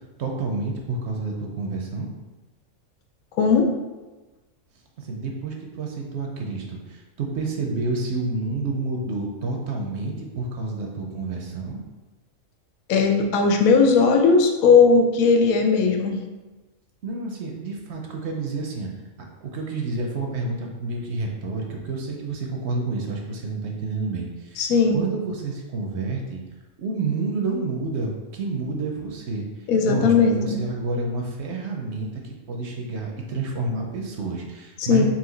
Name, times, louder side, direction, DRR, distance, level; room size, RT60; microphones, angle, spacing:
voice 1, 0.2-2.1 5.0-11.8 17.0-18.9 19.4-26.4 26.8-32.2 32.5-35.1, right 3 dB, 65° right, 0 dB, 0.8 m, -29 dB
voice 2, 3.4-3.7 12.9-16.2 24.6-25.0 29.7-30.6 34.9-35.1, left 5 dB, 90° left, 3 dB, 1.1 m, -18 dB
4.3 x 2.5 x 3.8 m, 1.2 s
omnidirectional pair, 1.4 m